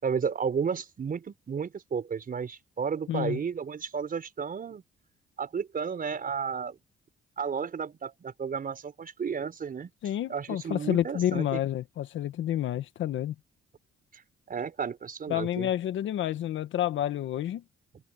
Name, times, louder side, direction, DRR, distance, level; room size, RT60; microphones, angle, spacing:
voice 1, 0.0-4.8 5.4-6.8 7.4-9.9 10.3-11.6 14.1-14.2 14.5-15.7, right 6 dB, 45° right, 5.8 m, -32 dB
voice 2, 3.1-3.4 10.0-13.3 15.3-17.6, left 12 dB, 75° left, 1.4 m, -29 dB
cardioid pair, 90°, 20 cm